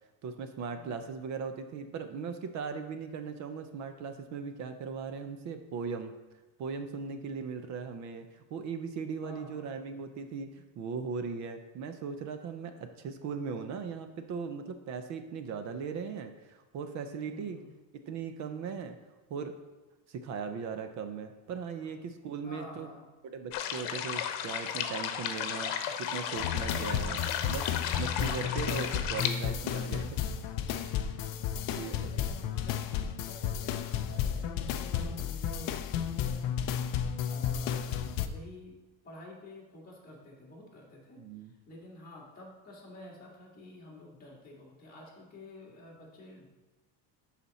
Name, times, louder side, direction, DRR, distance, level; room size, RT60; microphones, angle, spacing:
voice 1, 0.2-6.1 6.6-17.6 18.1-19.0 19.3-19.5 20.1-22.9 23.2-30.2 31.8-32.1 37.0-37.3 41.2-41.5, right 5 dB, 40° right, 8 dB, 0.4 m, -38 dB
voice 2, 0.7-1.2 9.2-9.7 17.2-17.7 21.8-21.9 22.4-23.1 31.5-32.8 33.3-36.6 37.3-37.8 38.2-38.8 39.0-46.4, left 1 dB, 20° left, -5 dB, 1.8 m, -50 dB
sound 1, 23.5-29.3, left 9 dB, 80° left, 0.9 m, -34 dB
sound 2, 26.4-38.3, left 8 dB, 45° left, 0.4 m, -33 dB
11.5 x 4.2 x 4.1 m, 1.2 s
cardioid pair, 180°, 48 cm